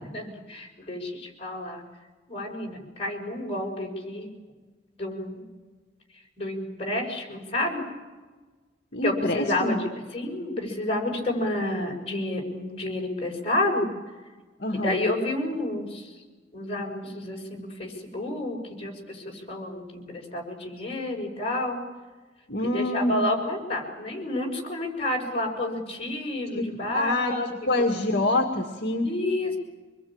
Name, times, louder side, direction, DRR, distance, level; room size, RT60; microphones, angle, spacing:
voice 1, 0.1-1.8 2.3-4.3 5.0-5.5 6.4-7.8 9.0-9.8 10.1-13.9 14.7-16.1 16.5-21.8 22.6-27.5 27.7-27.9 29.0-29.6, left 1 dB, 30° left, -1 dB, 6.4 m, -30 dB
voice 2, 8.9-9.8 11.2-11.4 14.6-15.0 22.5-23.3 26.5-26.7 26.9-29.1, left 2 dB, 60° left, 3 dB, 2.2 m, -26 dB
25.5 x 21.5 x 8.9 m, 1.3 s
head